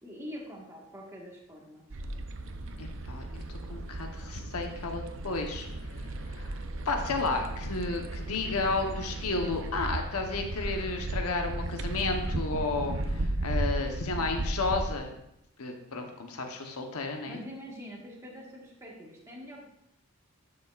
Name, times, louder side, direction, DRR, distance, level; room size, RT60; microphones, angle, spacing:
voice 1, 0.0-1.9 17.3-19.7, equal, 10° right, -3 dB, 1.5 m, -44 dB
sound 1, 1.9-15.0, right 2 dB, 60° right, 0.6 m, -35 dB
voice 2, 2.8-3.4 3.7-5.7 6.3-6.5 6.8-15.2 15.6-17.4, left 3 dB, 80° left, 3 dB, 1.0 m, -32 dB
11.5 x 6.5 x 2.4 m, 0.79 s
head